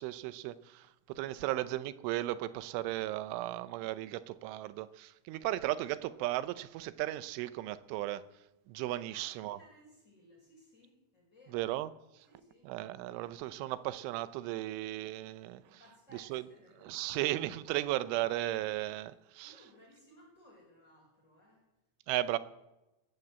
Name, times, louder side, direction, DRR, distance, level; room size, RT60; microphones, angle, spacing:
voice 1, 0.0-8.2 8.7-9.6 11.5-11.9 12.7-15.8 16.1-16.4 16.8-19.5 22.1-22.4, right 15 dB, 90° right, 3.3 m, -35 dB
voice 2, 8.9-11.7 12.3-12.7 15.6-17.2 19.4-21.6 22.1-22.4, equal, 15° left, 5.1 m, -61 dB
20.5 x 8.8 x 8.0 m
omnidirectional pair, 5.4 m